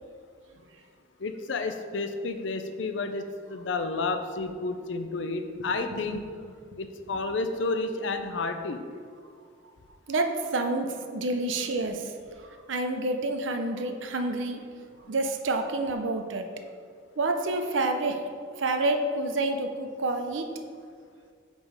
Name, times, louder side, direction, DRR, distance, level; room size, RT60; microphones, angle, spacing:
voice 1, 1.2-6.2 6.8-8.8, left 3 dB, 75° left, 8 dB, 0.5 m, -31 dB
voice 2, 5.9-6.2 10.1-14.6 15.1-16.5 17.2-18.2 18.6-20.5, right 2 dB, 80° right, 6 dB, 0.6 m, -28 dB
5.3 x 5.2 x 4.7 m, 2.1 s
head